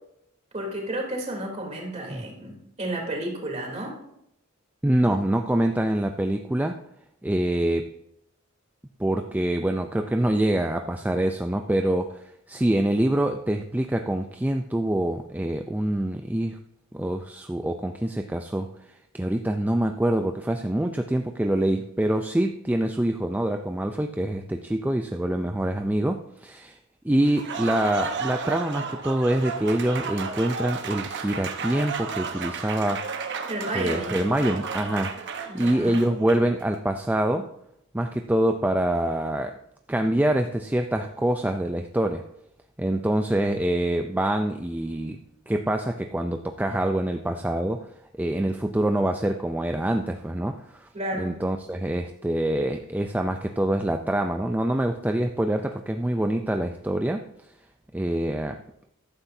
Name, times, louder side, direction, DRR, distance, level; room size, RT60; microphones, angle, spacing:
voice 1, 0.5-4.0 33.5-34.2 35.5-36.1 50.9-51.4, right 1 dB, 30° right, -1 dB, 3.2 m, -31 dB
voice 2, 4.8-6.8 7.2-7.9 9.0-12.2 12.5-16.6 16.9-18.7 19.1-26.8 27.0-33.1 33.7-35.1 35.5-37.5 37.9-39.5 39.9-42.2 42.8-45.2 45.5-47.9 48.2-50.9 51.2-57.2 57.9-58.6, right 1 dB, 10° right, 5 dB, 0.4 m, -25 dB
Applause, 27.2-36.6, right 5 dB, 60° right, 1.1 m, -33 dB
14.0 x 12.0 x 2.7 m, 0.77 s
head